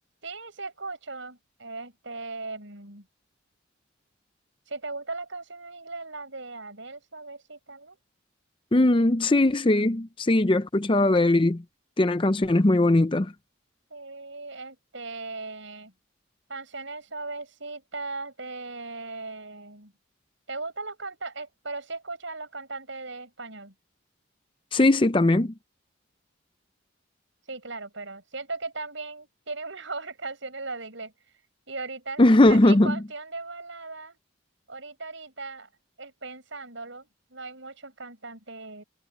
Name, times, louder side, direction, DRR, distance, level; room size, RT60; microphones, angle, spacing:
voice 1, 0.2-3.1 4.7-8.0 13.9-15.9 16.5-19.9 20.5-23.7 27.5-31.1 31.7-34.2 34.7-35.7 36.0-38.8, right 3 dB, 65° right, 6.8 m, -38 dB
voice 2, 8.7-11.6 12.0-13.3 24.7-25.5 32.2-33.0, left 2 dB, 25° left, 0.6 m, -20 dB
head